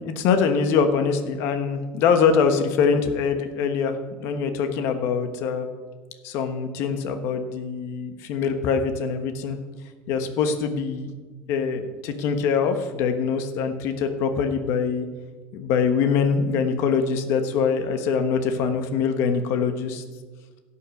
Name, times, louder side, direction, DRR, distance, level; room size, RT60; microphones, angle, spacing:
voice 1, 0.0-5.7 6.2-9.6 10.1-11.1 11.5-15.1 15.5-20.0, left 6 dB, 60° left, 7 dB, 1.2 m, -23 dB
16.0 x 5.8 x 6.4 m, 1.3 s
cardioid pair, 155°, 5 cm